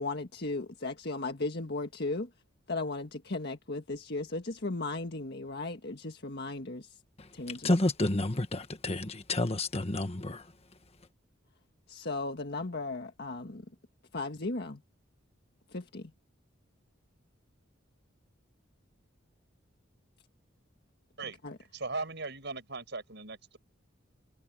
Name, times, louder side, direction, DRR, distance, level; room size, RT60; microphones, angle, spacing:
voice 1, 0.0-2.3 2.7-7.0 7.3-7.7 11.9-13.6 14.1-14.8 15.7-16.1 21.4-21.6, left 3 dB, 55° left, 1.7 m, -36 dB
voice 2, 7.2-10.5, left 1 dB, 30° left, 1.5 m, -30 dB
voice 3, 21.7-23.6, right 3 dB, 60° right, 7.4 m, -38 dB
head